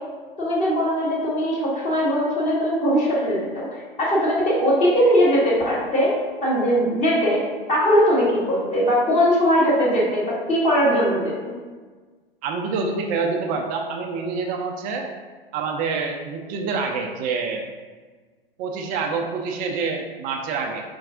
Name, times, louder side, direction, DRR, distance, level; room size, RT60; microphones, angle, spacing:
voice 1, 0.4-7.4 7.7-11.5, equal, 25° left, -6 dB, 1.3 m, -20 dB
voice 2, 12.4-15.1 15.5-17.6 18.6-20.8, right 4 dB, 30° right, 3 dB, 0.4 m, -26 dB
4.5 x 4.2 x 2.4 m, 1.4 s
hypercardioid pair, 110°, 30 cm